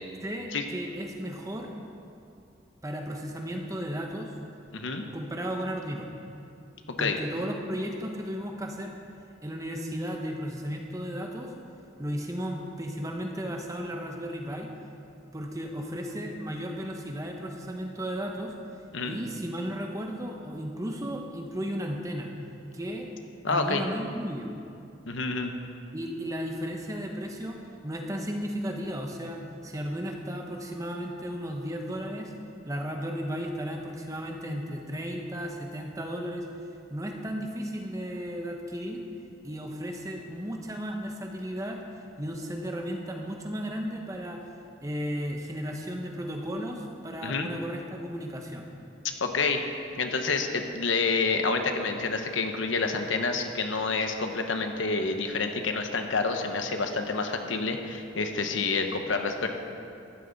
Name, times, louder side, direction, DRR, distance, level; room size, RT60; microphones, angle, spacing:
voice 1, 0.2-1.7 2.8-4.3 5.1-6.1 7.0-8.9 9.4-11.5 12.0-14.7 15.3-18.5 19.0-22.3 22.7-23.1 23.5-24.5 25.9-27.6 27.8-32.3 32.7-36.5 36.9-39.0 39.4-41.8 42.2-44.4 44.8-48.7, equal, 15° right, 2 dB, 1.0 m, -34 dB
voice 2, 4.7-5.0 7.0-7.2 18.9-19.2 23.4-23.8 25.1-25.5 47.2-47.5 49.2-49.6 50.0-59.5, left 4 dB, 80° left, 5 dB, 1.0 m, -28 dB
15.0 x 11.5 x 4.1 m, 2.5 s
head